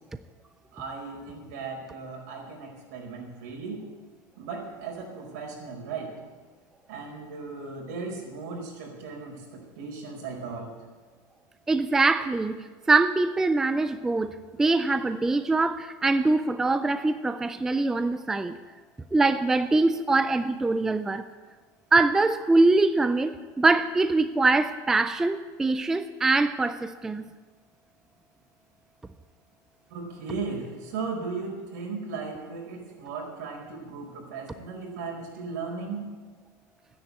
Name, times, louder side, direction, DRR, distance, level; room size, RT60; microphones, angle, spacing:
voice 1, 0.7-3.8 4.4-6.1 6.9-10.7 29.9-36.1, right 4 dB, 80° right, 0 dB, 5.1 m, -36 dB
voice 2, 11.7-18.6 19.1-21.2 21.9-27.3, right 3 dB, 5° right, 10 dB, 0.3 m, -23 dB
12.5 x 10.0 x 8.0 m, 1.4 s
supercardioid pair, 175°, 9 cm